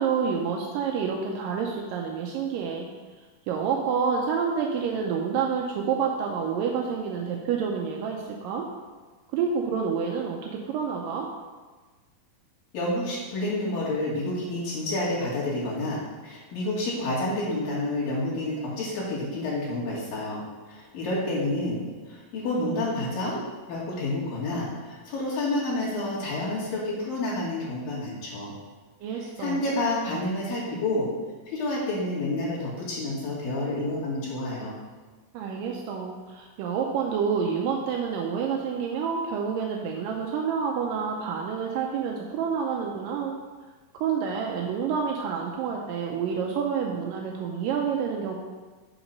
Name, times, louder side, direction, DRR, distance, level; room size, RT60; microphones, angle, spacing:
voice 1, 0.0-2.9 3.5-8.7 9.3-11.3 29.0-29.6 35.3-43.4 44.0-48.4, right 6 dB, 80° right, 0 dB, 2.4 m, -28 dB
voice 2, 12.7-20.4 20.7-23.4 23.7-28.5 29.1-31.1 31.5-34.8, left 2 dB, 85° left, -6 dB, 3.9 m, -29 dB
7.4 x 5.9 x 5.3 m, 1.3 s
omnidirectional pair, 3.9 m